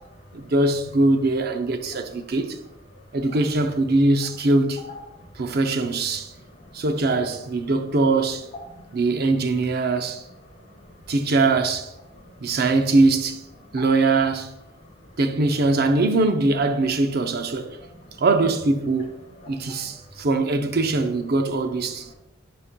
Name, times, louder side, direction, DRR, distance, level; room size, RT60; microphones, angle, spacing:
voice 1, 0.3-2.6 3.1-4.8 5.4-6.3 6.7-8.5 8.9-10.2 11.1-11.9 12.4-13.4 13.7-14.5 15.2-17.8 18.2-19.1 19.5-22.1, right 3 dB, 55° right, 0.6 m, -22 dB
voice 2, 6.3-6.8 8.7-9.0 10.8-10.9 12.1-12.5 13.7-13.9 17.8-18.2 19.4-20.0, left 1 dB, 35° left, 2.1 m, -47 dB
11.0 x 4.3 x 2.2 m
head